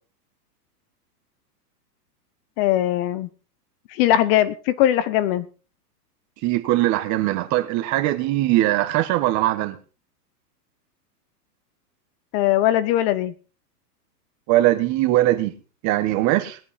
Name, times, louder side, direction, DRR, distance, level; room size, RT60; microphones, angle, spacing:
voice 1, 2.6-3.3 3.9-5.5 12.3-13.3, left 13 dB, 40° left, 0.8 m, -20 dB
voice 2, 6.4-9.8 14.5-15.5 15.8-16.6, right 16 dB, 35° right, 1.4 m, -21 dB
20.0 x 8.8 x 4.2 m
hypercardioid pair, 130°, 48 cm